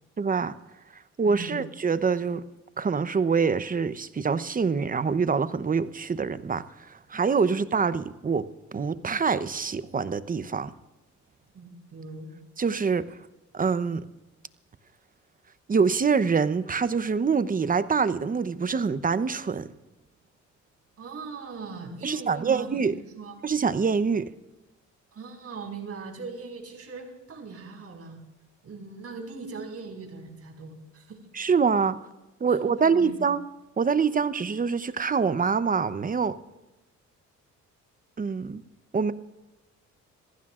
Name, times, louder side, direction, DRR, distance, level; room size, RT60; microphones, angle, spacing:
voice 1, 0.2-0.5 1.2-2.4 2.8-6.6 7.1-10.7 12.6-13.1 13.5-14.0 15.7-19.7 22.0-23.0 23.4-24.3 31.3-32.0 32.4-33.4 33.8-36.3 38.2-38.6 38.9-39.1, right 5 dB, 30° right, 13 dB, 0.8 m, -25 dB
voice 2, 1.2-1.6 11.5-12.3 21.0-23.4 25.1-28.2 28.6-31.2 32.5-33.3, right 4 dB, 50° right, 2 dB, 5.1 m, -40 dB
27.0 x 15.5 x 2.5 m, 1.0 s
cardioid pair, 90°, 30 cm